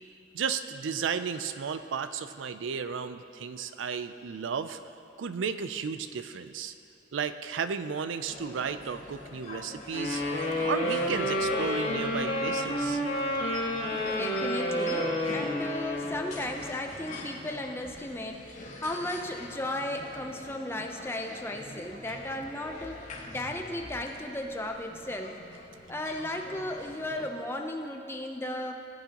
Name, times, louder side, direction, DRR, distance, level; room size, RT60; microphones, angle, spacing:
voice 1, 0.3-4.8 5.2-6.7 7.1-10.2 10.6-13.0, right 6 dB, 75° right, 11 dB, 0.4 m, -33 dB
sound 1, 8.2-27.3, left 2 dB, 40° left, 1.8 m, -44 dB
Wind instrument woodwind instrument, 9.9-16.4, left 1 dB, 80° left, 1.8 m, -30 dB
voice 2, 14.0-23.0 23.3-25.4 25.9-28.7, left 1 dB, 10° left, 3 dB, 0.6 m, -35 dB
17.5 x 8.3 x 2.9 m, 2.8 s
head